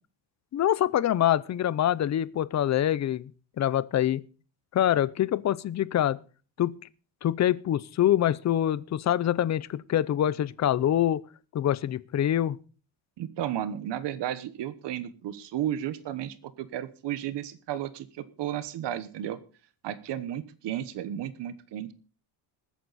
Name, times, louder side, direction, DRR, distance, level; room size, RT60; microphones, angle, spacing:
voice 1, 0.5-3.3 3.6-4.2 4.7-6.2 6.6-6.7 7.2-11.2 11.5-12.6, left 11 dB, 35° left, 0.5 m, -25 dB
voice 2, 13.2-19.4 19.8-21.9, right 11 dB, 60° right, 1.2 m, -33 dB
20.5 x 9.4 x 4.1 m
cardioid pair, 175°, 46 cm